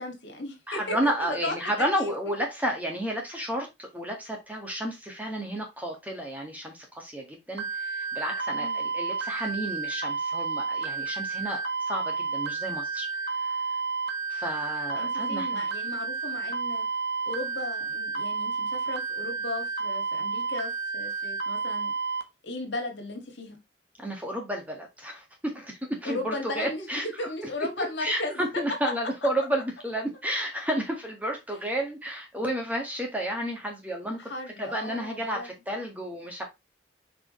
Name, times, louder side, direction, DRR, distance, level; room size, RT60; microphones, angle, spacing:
voice 1, 0.0-2.1 8.6-8.8 15.0-16.9 17.3-21.9 22.4-23.6 26.0-26.9 27.2-28.4 34.2-35.5, left 2 dB, 70° left, 2.1 m, -36 dB
voice 2, 0.7-13.6 14.3-15.6 24.0-27.5 27.8-34.3 34.6-36.4, equal, 10° right, 1.8 m, -32 dB
sound 1, 7.6-22.2, right 4 dB, 60° right, 1.2 m, -31 dB
6.2 x 5.0 x 3.2 m
head